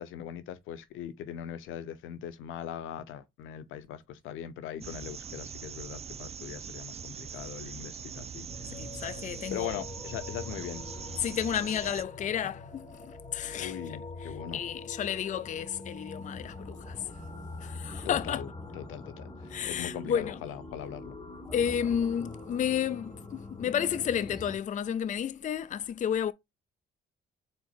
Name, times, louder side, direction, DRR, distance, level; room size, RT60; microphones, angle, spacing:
voice 1, 0.0-8.5 9.5-10.9 13.5-14.6 18.0-18.5 18.7-21.2, left 10 dB, 90° left, 0.8 m, -40 dB
sound 1, 4.8-12.0, right 7 dB, 30° right, 0.4 m, -42 dB
sound 2, 8.5-24.6, left 2 dB, 20° left, 1.4 m, -44 dB
voice 2, 8.7-9.8 11.2-17.0 17.6-18.4 19.5-20.4 21.5-26.3, left 9 dB, 40° left, 0.4 m, -32 dB
4.5 x 4.0 x 2.4 m
cardioid pair, 90°, 20 cm